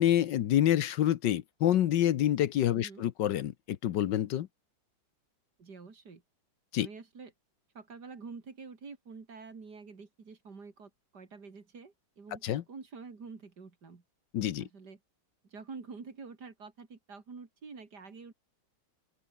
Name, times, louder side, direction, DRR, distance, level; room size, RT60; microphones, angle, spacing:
voice 1, 0.0-4.5 6.7-6.9 12.4-12.6 14.3-14.7, left 12 dB, 75° left, 1.5 m, -27 dB
voice 2, 5.6-6.2 6.8-7.3 7.7-14.0 14.6-15.0 15.5-18.3, right 4 dB, 60° right, 3.4 m, -47 dB
open air
omnidirectional pair, 2.0 m